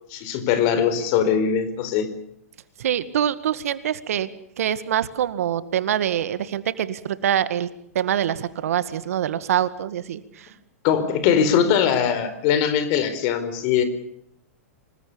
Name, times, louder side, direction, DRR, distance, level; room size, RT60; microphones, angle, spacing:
voice 1, 0.1-2.1 10.8-13.8, left 8 dB, 50° left, 12 dB, 4.6 m, -21 dB
voice 2, 2.8-4.3 4.6-7.7 8.0-10.5, right 10 dB, 70° right, 14 dB, 1.9 m, -24 dB
26.0 x 20.5 x 7.0 m, 0.73 s
hypercardioid pair, 115°, 8 cm